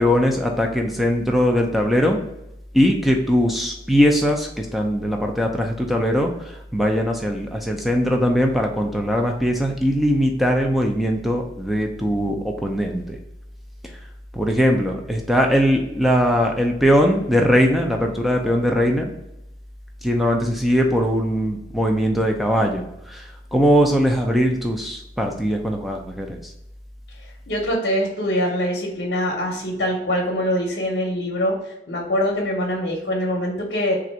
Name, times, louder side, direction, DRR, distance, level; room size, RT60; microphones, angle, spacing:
voice 1, 0.0-2.2 2.7-13.2 14.3-19.1 20.0-26.4, equal, ahead, 2 dB, 0.5 m, -20 dB
voice 2, 27.5-31.6 31.9-34.0, equal, 70° left, -1 dB, 0.8 m, -23 dB
3.7 x 2.6 x 4.3 m, 0.86 s
head